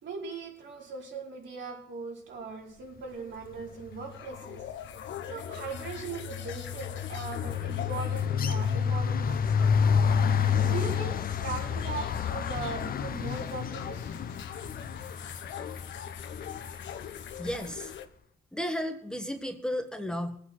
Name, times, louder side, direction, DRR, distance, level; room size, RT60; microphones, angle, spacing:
voice 1, 0.0-4.6 5.3-9.8 10.6-14.0, right 4 dB, 70° right, -2 dB, 5.2 m, -39 dB
sound 1, 3.1-18.1, left 8 dB, 70° left, 1.3 m, -40 dB
sound 2, 3.7-4.1 4.4-17.5, left 7 dB, 45° left, 0.9 m, -30 dB
voice 2, 17.4-17.9 18.5-20.4, equal, 5° left, 5 dB, 1.4 m, -33 dB
20.0 x 8.5 x 6.1 m, 0.68 s
cardioid pair, 90°, 20 cm